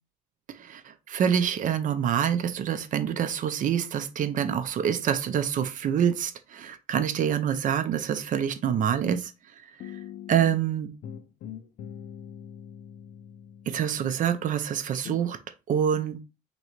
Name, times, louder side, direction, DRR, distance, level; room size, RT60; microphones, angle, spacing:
voice 1, 0.5-9.3 9.8-9.9 10.3-10.9 13.7-15.4 15.7-16.2, right 8 dB, 50° right, 0.6 m, -26 dB
sound 1, 9.8-10.7 11.0-14.6 15.0-15.3, left 9 dB, 65° left, 0.5 m, -43 dB
3.0 x 2.7 x 4.4 m
cardioid pair, 110°, 17 cm